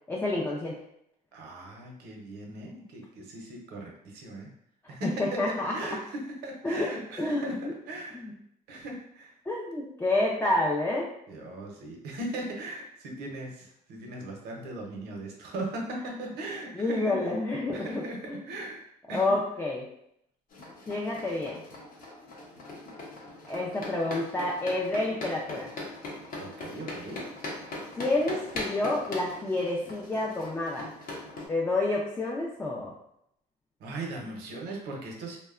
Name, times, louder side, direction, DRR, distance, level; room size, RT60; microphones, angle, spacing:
voice 1, 0.1-0.8 4.8-5.7 6.6-6.9 7.2-7.7 8.1-8.3 9.5-11.1 15.9-16.2 16.7-18.4 19.1-19.8 20.9-21.6 23.5-25.7 28.0-30.9 31.5-32.9, left 2 dB, 15° left, -3 dB, 0.4 m, -29 dB
voice 2, 1.3-4.5 4.9-7.6 7.9-8.2 8.7-9.3 11.3-17.3 17.7-18.8 19.1-19.3 26.4-27.2 33.8-35.4, right 1 dB, 75° right, 0 dB, 0.7 m, -38 dB
sound 1, 20.5-31.5, left 2 dB, 55° left, 0.7 m, -40 dB
2.7 x 2.1 x 2.4 m, 0.75 s
cardioid pair, 110°, 17 cm